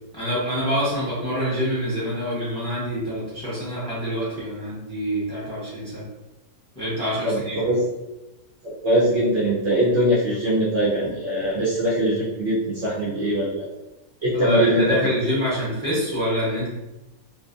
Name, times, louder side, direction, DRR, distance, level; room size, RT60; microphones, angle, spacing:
voice 1, 0.1-6.0 6.7-7.6 14.3-16.7, equal, 5° left, -9 dB, 0.8 m, -26 dB
voice 2, 7.2-7.8 8.6-13.6 14.2-14.8, right 1 dB, 60° right, -7 dB, 0.8 m, -22 dB
2.5 x 2.4 x 2.5 m, 0.98 s
omnidirectional pair, 1.5 m